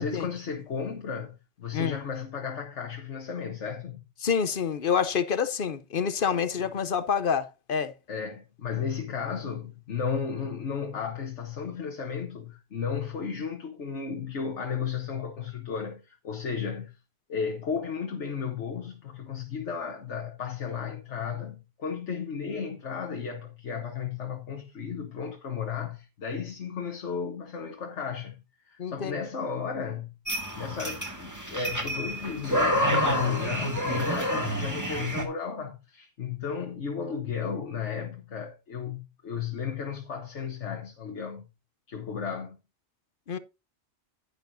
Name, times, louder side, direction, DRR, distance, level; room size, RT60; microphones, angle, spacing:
voice 1, 0.0-4.0 6.6-6.7 8.1-16.9 17.3-28.4 28.7-30.1 30.5-41.4 41.9-42.6, left 6 dB, 85° left, 1.6 m, -34 dB
voice 2, 4.2-7.9 28.8-29.2 43.3-43.4, left 6 dB, 55° left, 0.8 m, -27 dB
sound 1, 30.3-35.2, left 1 dB, 15° right, 2.1 m, -28 dB
10.5 x 9.8 x 2.6 m
omnidirectional pair, 1.2 m